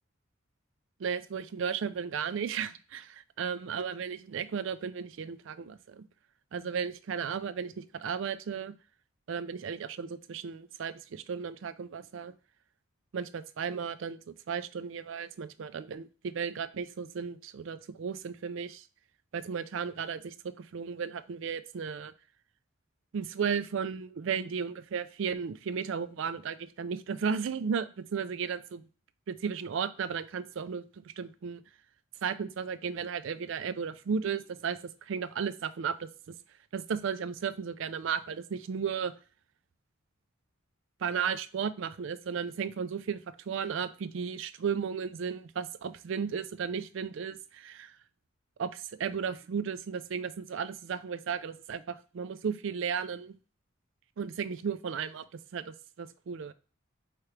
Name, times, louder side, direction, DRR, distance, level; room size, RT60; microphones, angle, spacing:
voice 1, 1.0-6.1 6.5-8.7 9.3-12.3 13.1-13.3 13.6-18.8 19.3-22.1 23.1-28.8 29.3-31.6 32.2-36.1 36.7-39.1 41.0-43.2 43.5-48.0 48.6-53.3 54.2-56.5, right 6 dB, 65° right, 13 dB, 0.4 m, -34 dB
4.8 x 3.0 x 3.2 m, 0.36 s
head